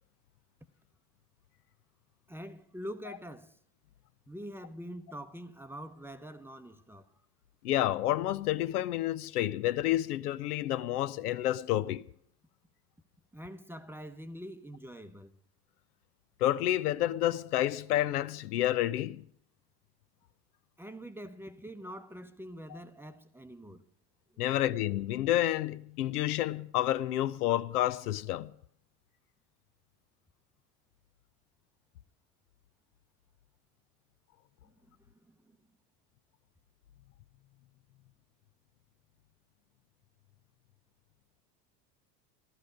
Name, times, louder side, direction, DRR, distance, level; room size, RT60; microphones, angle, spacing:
voice 1, 2.3-3.6 4.3-7.1 13.3-15.3 20.8-23.9 24.3-24.6 34.6-35.6, equal, 5° right, 0.7 m, -45 dB
voice 2, 7.6-12.1 16.4-19.2 24.4-28.5, left 13 dB, 70° left, 0.6 m, -29 dB
13.5 x 12.5 x 5.1 m
figure-of-eight pair, 70°, 48 cm